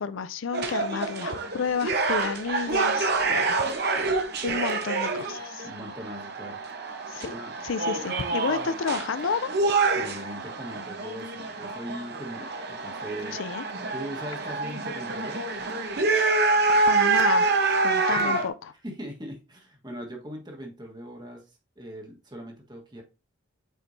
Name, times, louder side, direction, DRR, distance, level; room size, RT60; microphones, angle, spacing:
voice 1, 0.0-3.6 4.4-5.7 7.1-7.3 7.6-9.5 13.3-13.6 16.9-17.5 17.8-18.5, left 5 dB, 70° left, 0.4 m, -30 dB
sound 1, 0.5-18.5, right 3 dB, 50° right, 0.9 m, -27 dB
voice 2, 5.6-6.6 7.2-7.5 9.9-13.4 13.9-15.4 18.1-18.3 18.8-23.0, equal, 20° right, 1.4 m, -40 dB
8.1 x 4.4 x 2.7 m
head